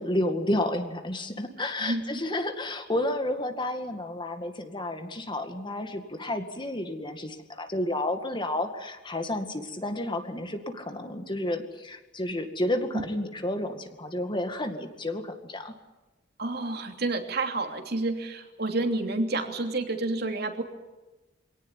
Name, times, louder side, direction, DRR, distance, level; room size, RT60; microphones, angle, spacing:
voice 1, 0.0-15.8, left 1 dB, 25° left, 7 dB, 2.1 m, -31 dB
voice 2, 16.4-20.6, right 2 dB, 55° right, 4 dB, 3.0 m, -29 dB
25.0 x 18.0 x 10.0 m, 1.1 s
head